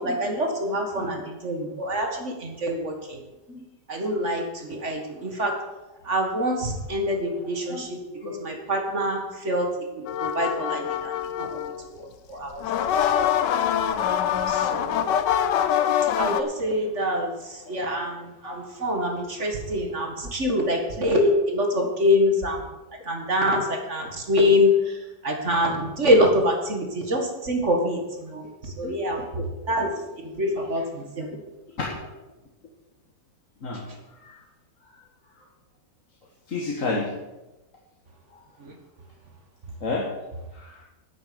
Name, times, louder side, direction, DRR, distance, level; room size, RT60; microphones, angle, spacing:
voice 1, 0.0-3.2 3.9-5.6 6.0-8.0 8.2-9.7 10.0-11.7 12.0-12.6 13.1-13.2 14.5-15.1 16.2-22.7 23.1-29.2 29.7-29.9 30.2-31.3 38.6-38.7, left 1 dB, 45° right, 3 dB, 1.9 m, -25 dB
voice 2, 8.2-8.5 17.7-17.9 18.4-18.6 28.8-29.0 29.4-29.5 30.4-30.7 31.9-32.0 33.6-33.8 34.2-34.4 36.5-37.1 38.3-38.4 39.8-40.8, left 3 dB, 50° left, -2 dB, 1.9 m, -32 dB
sound 1, 10.1-11.8 12.5-16.4, left 9 dB, 85° left, 1.4 m, -24 dB
9.8 x 9.2 x 6.9 m, 1.1 s
omnidirectional pair, 1.8 m